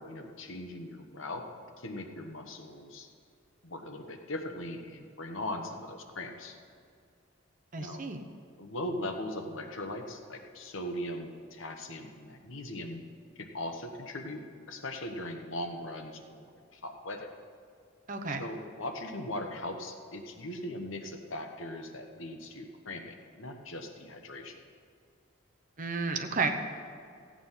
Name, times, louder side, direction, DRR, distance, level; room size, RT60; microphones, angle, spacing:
voice 1, 0.0-1.5 1.8-3.1 3.6-6.6 7.8-8.0 8.6-13.0 13.4-14.4 14.7-17.3 18.4-24.6, left 1 dB, 70° left, 4 dB, 1.2 m, -39 dB
voice 2, 7.7-8.2 18.1-18.4 25.8-26.5, right 4 dB, 40° right, 5 dB, 0.9 m, -32 dB
15.0 x 8.7 x 5.7 m, 2.3 s
head